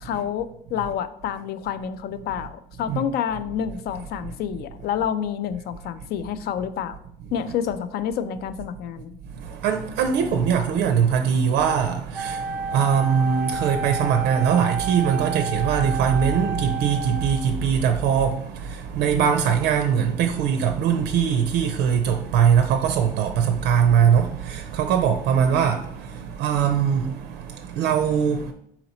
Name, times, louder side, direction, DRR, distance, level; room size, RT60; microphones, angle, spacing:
voice 1, 0.0-7.0 7.3-9.2, left 8 dB, 70° left, 0.4 m, -28 dB
voice 2, 9.2-28.5, right 7 dB, 90° right, 0.4 m, -21 dB
Wind instrument woodwind instrument, 12.1-17.6, right 5 dB, 10° right, 0.3 m, -31 dB
4.0 x 2.9 x 4.1 m
cardioid pair, 110°, 17 cm